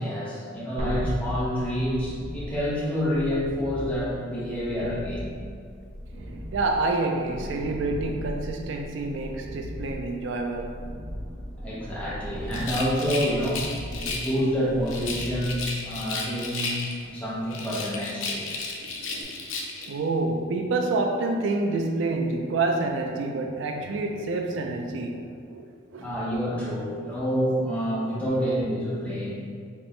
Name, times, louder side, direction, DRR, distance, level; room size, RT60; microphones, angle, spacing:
voice 1, 0.0-5.3 11.6-13.6 14.0-18.5 26.0-29.4, equal, 5° left, -8 dB, 0.9 m, -28 dB
sound 1, 0.8-16.1 19.2-19.3, equal, 30° right, 0.7 m, -37 dB
Thunder, 5.6-18.8, equal, 25° left, 1.3 m, -45 dB
voice 2, 6.5-10.7 18.8-26.1, right 3 dB, 70° right, 3 dB, 0.4 m, -28 dB
Rattle, 12.5-14.4 14.9-17.1 17.5-19.9, left 3 dB, 90° left, 0.6 m, -33 dB
4.4 x 3.3 x 3.2 m, 2.2 s
head